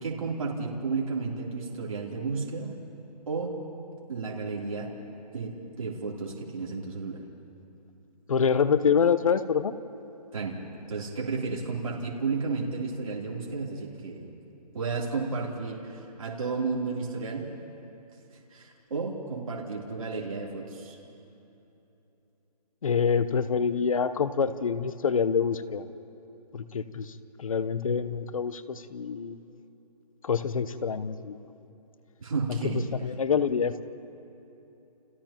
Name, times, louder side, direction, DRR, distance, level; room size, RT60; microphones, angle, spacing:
voice 1, 0.0-2.7 3.3-3.6 4.1-4.9 5.3-7.2 10.3-10.6 10.9-14.3 14.7-17.5 18.5-21.0 32.2-32.8, right 4 dB, 55° right, -3 dB, 3.3 m, -32 dB
voice 2, 8.3-9.7 22.8-25.9 26.5-29.4 30.2-31.4 32.7-33.8, left 6 dB, 55° left, 13 dB, 0.9 m, -26 dB
30.0 x 29.5 x 3.0 m, 3.0 s
hypercardioid pair, 165°, 21 cm